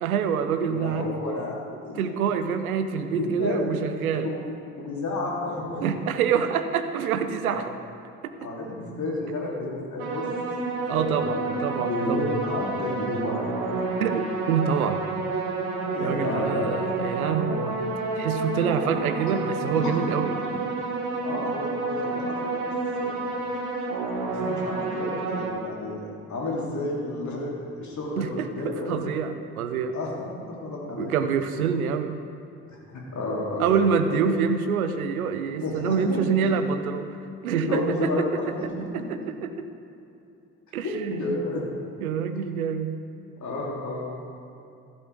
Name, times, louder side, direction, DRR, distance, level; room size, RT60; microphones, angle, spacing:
voice 1, 0.0-1.1 2.0-4.3 5.8-7.7 8.2-8.3 10.9-12.2 14.0-15.0 16.0-17.7 18.1-20.4 28.1-29.9 30.9-32.1 33.6-37.1 37.4-38.3 38.9-39.7 40.7-41.2 42.0-43.0, right 7 dB, 75° right, 9 dB, 0.7 m, -26 dB
voice 2, 0.6-1.6 1.8-2.0 3.1-3.7 4.0-4.5 4.7-6.0 7.4-7.6 8.4-10.3 10.9-13.4 15.9-16.7 19.2-19.3 19.7-20.0 20.4-20.5 21.2-22.7 23.0-23.2 24.2-29.0 29.9-30.1 30.4-31.1 32.7-33.8 34.1-34.2 35.6-36.2 37.6-38.7 40.8-41.6 43.4-44.1, left 2 dB, 40° left, -3 dB, 2.9 m, -31 dB
sound 1, 10.0-25.5, right 3 dB, 55° right, 1.5 m, -29 dB
14.5 x 7.5 x 4.6 m, 2.8 s
figure-of-eight pair, 45°, 43 cm